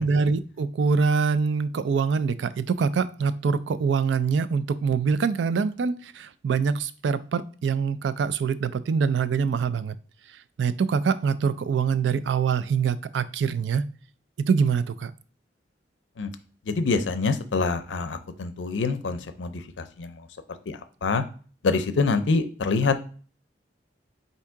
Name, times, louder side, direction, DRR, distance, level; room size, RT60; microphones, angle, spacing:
voice 1, 0.0-9.9 10.6-13.8 14.5-15.1, right 5 dB, 75° right, 14 dB, 0.3 m, -24 dB
voice 2, 16.7-20.2 20.7-21.2 21.6-23.1, left 4 dB, 85° left, 9 dB, 0.5 m, -26 dB
3.6 x 2.7 x 4.5 m, 0.40 s
head